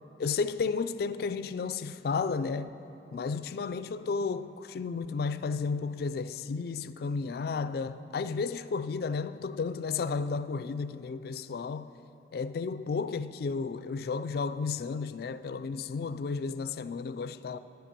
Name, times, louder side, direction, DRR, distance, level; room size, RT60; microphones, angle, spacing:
voice 1, 0.2-2.7 3.1-11.9 12.3-17.6, left 4 dB, 55° left, 0.3 m, -33 dB
10.5 x 9.3 x 6.6 m
head